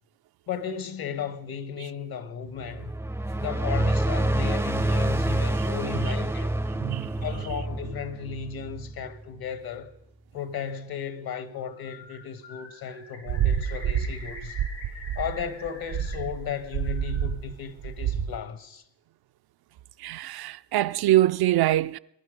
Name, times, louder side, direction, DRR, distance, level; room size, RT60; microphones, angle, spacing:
voice 1, 0.5-2.9 3.4-6.5 7.0-9.9 10.3-14.6 15.2-18.8, left 7 dB, 60° left, 1.4 m, -35 dB
sound 1, 2.6-9.2, right 1 dB, 5° right, 0.5 m, -27 dB
voice 2, 6.8-7.2 20.0-22.0, right 14 dB, 65° right, 0.5 m, -24 dB
Bird, 11.6-12.2 12.4-16.1 16.5-17.3, left 4 dB, 80° left, 7.1 m, -45 dB
sound 2, 13.3-18.4, right 9 dB, 80° right, 0.9 m, -28 dB
20.0 x 11.0 x 5.2 m
cardioid pair, 70°, 41 cm